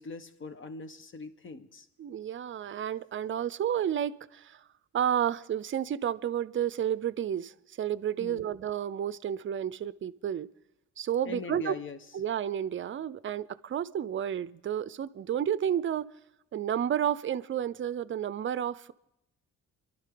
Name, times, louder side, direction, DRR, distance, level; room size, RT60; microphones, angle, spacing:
voice 1, 0.0-1.9 8.2-8.5 11.2-12.0, left 3 dB, 40° left, 10 dB, 1.1 m, -41 dB
voice 2, 2.0-4.6 4.9-10.5 11.0-11.8 12.1-16.1 16.5-18.9, right 9 dB, 40° right, 17 dB, 0.5 m, -31 dB
24.5 x 12.0 x 3.8 m, 0.89 s
cardioid pair, 90°, 30 cm